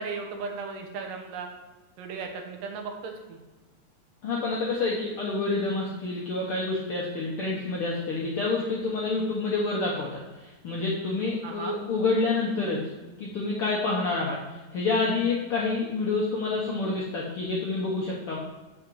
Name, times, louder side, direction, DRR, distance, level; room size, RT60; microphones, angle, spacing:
voice 1, 0.0-1.5 2.0-3.4 11.4-11.8, right 4 dB, 75° right, 3 dB, 2.6 m, -36 dB
voice 2, 4.2-12.9 13.2-18.4, left 3 dB, 65° left, -4 dB, 1.4 m, -28 dB
7.5 x 6.5 x 4.7 m, 1.2 s
omnidirectional pair, 4.0 m